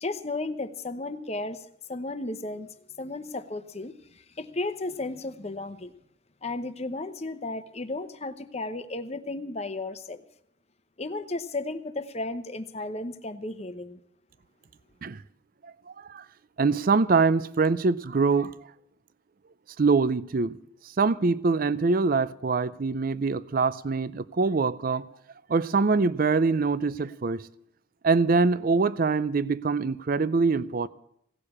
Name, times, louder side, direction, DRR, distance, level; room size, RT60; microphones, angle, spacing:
voice 1, 0.0-2.7 3.0-5.9 6.4-10.2 11.0-14.0, left 2 dB, 30° left, 0.8 m, -34 dB
voice 2, 15.6-16.3 16.6-18.6 19.8-20.6 21.0-25.1 25.5-27.5 28.0-30.9, right 4 dB, 45° right, 0.5 m, -24 dB
17.0 x 6.8 x 9.7 m
head